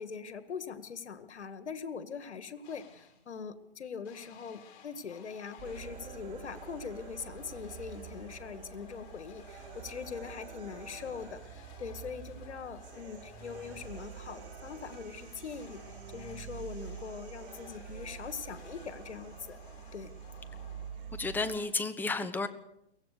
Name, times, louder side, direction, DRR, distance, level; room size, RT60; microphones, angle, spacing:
voice 1, 0.0-19.6 19.9-20.1, left 6 dB, 80° left, 11 dB, 2.1 m, -42 dB
sound 1, 2.6-3.3 4.0-21.4, left 5 dB, 40° left, 5.7 m, -55 dB
sound 2, 5.6-21.6, right 9 dB, 20° right, 2.4 m, -48 dB
sound 3, 5.6-21.7, right 6 dB, 50° right, 6.2 m, -54 dB
voice 2, 21.2-22.5, left 3 dB, 5° left, 10 dB, 1.2 m, -32 dB
23.0 x 18.0 x 6.8 m, 0.79 s
hypercardioid pair, 140°, 33 cm